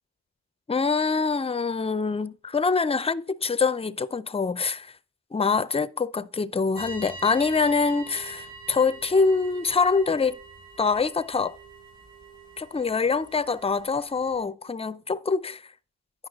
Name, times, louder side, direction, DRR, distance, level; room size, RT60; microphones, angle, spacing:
voice 1, 0.7-4.9 5.3-10.4 10.8-11.6 12.6-15.6, left 4 dB, 15° left, 0.4 m, -25 dB
sound 1, 6.7-14.4, right 3 dB, 85° right, 4.0 m, -44 dB
9.6 x 5.4 x 3.9 m
cardioid pair, 45°, 38 cm